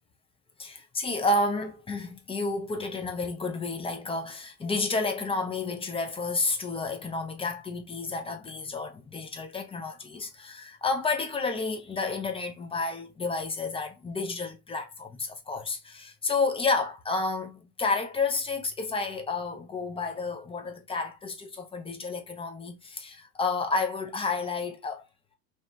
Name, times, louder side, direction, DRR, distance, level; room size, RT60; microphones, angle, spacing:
voice 1, 0.6-25.0, left 3 dB, 10° left, 0.5 m, -31 dB
2.8 x 2.2 x 2.9 m
hypercardioid pair, 85°, 50 cm